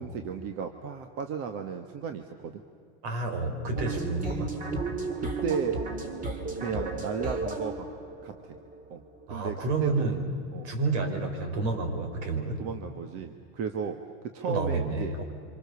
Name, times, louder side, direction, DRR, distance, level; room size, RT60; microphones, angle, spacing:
voice 1, 0.0-2.6 5.2-5.8 6.5-7.9 8.2-8.6 8.9-9.0 9.3-10.1 10.5-10.7 12.6-14.0 14.2-15.2, right 6 dB, 40° right, 6 dB, 1.5 m, -34 dB
voice 2, 3.0-4.6 9.3-10.3 10.6-12.6 14.4-15.2, right 3 dB, 65° right, 5 dB, 5.2 m, -30 dB
sound 1, 3.8-9.5, right 3 dB, 25° right, 2.9 m, -34 dB
27.5 x 26.0 x 7.1 m, 2.3 s
supercardioid pair, 140°, 35 cm